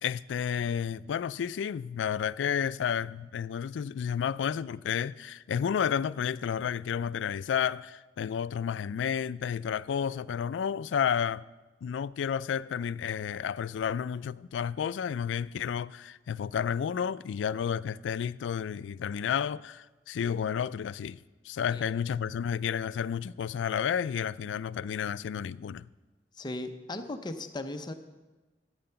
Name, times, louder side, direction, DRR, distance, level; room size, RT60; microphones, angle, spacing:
voice 1, 0.0-11.4 11.8-21.2 21.4-25.9, left 8 dB, 85° left, 0.3 m, -31 dB
voice 2, 26.4-27.9, left 2 dB, 25° left, 0.7 m, -37 dB
12.5 x 8.7 x 5.7 m
head